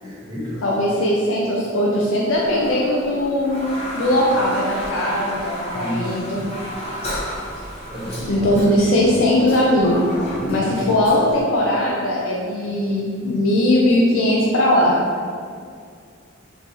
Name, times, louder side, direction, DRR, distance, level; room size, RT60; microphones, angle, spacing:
voice 1, 0.0-0.6 5.7-6.0 7.9-8.5 10.4-10.8, equal, 20° right, -10 dB, 1.1 m, -29 dB
voice 2, 0.6-3.6 3.9-6.4 8.3-10.0 10.5-15.0, left 1 dB, 70° left, -3 dB, 0.4 m, -19 dB
Toilet flush, 2.3-11.4, equal, 30° left, 0.7 m, -32 dB
3.7 x 2.6 x 2.9 m, 2.2 s
head